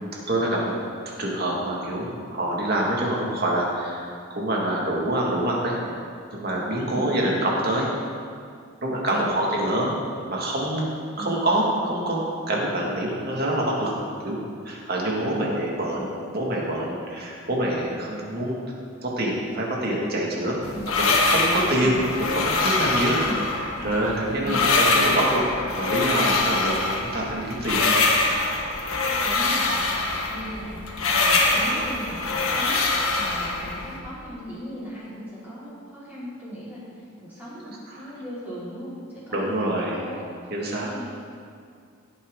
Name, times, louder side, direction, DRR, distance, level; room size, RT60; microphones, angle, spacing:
voice 1, 0.3-0.8 1.2-4.0 4.3-5.8 6.3-7.9 8.8-9.9 10.3-10.9 11.2-13.9 14.2-16.1 16.3-18.5 19.0-20.6 21.0-23.2 23.8-25.4 25.7-27.9 37.9-38.0 39.3-40.0 40.5-40.9, right 1 dB, 45° right, -3 dB, 2.4 m, -26 dB
voice 2, 9.1-9.4 11.1-11.4 15.3-15.6 20.7-21.0 21.8-22.0 23.2-23.5 24.4-24.7 29.2-40.5 40.8-41.1, equal, 10° right, -11 dB, 3.6 m, -37 dB
sound 1, 20.6-34.0, left 3 dB, 85° left, 1.4 m, -24 dB
17.0 x 8.9 x 4.1 m, 2.2 s
head